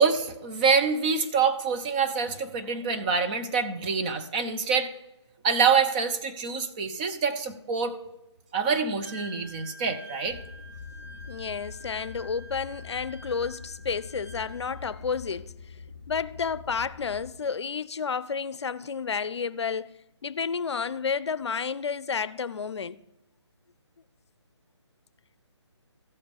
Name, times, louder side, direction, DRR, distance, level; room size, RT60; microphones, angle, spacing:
voice 1, 0.0-4.9 5.4-8.0 8.5-10.4, right 5 dB, 20° right, 0.5 m, -26 dB
Wind instrument woodwind instrument, 9.0-15.0, right 1 dB, 60° right, 3.1 m, -48 dB
sound 1, 10.2-17.3, left 5 dB, 5° left, 2.6 m, -44 dB
voice 2, 11.3-15.5 16.1-19.9 20.2-23.0, left 5 dB, 70° left, 0.5 m, -31 dB
14.0 x 5.1 x 5.3 m
figure-of-eight pair, 155°, 15 cm